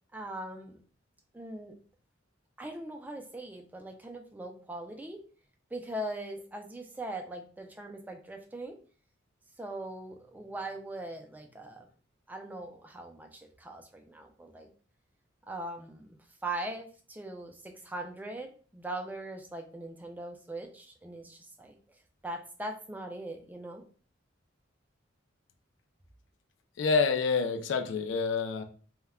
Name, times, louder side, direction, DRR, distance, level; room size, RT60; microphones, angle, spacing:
voice 1, 0.1-0.8 1.3-1.7 2.6-5.2 5.7-8.7 9.6-11.9 12.3-14.7 15.5-16.2 16.4-21.8 22.2-23.8, right 1 dB, 10° right, 4 dB, 0.3 m, -40 dB
voice 2, 26.8-28.6, left 5 dB, 70° left, 6 dB, 0.3 m, -27 dB
2.1 x 2.1 x 3.4 m, 0.41 s
head